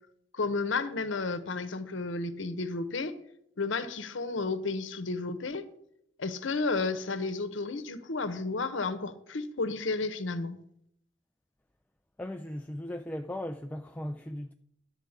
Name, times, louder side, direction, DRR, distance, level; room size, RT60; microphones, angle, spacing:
voice 1, 0.3-3.1 3.6-5.6 6.2-10.6, left 3 dB, 80° left, 0.8 m, -32 dB
voice 2, 12.2-14.5, left 1 dB, 10° left, 0.3 m, -37 dB
11.5 x 4.6 x 7.9 m
head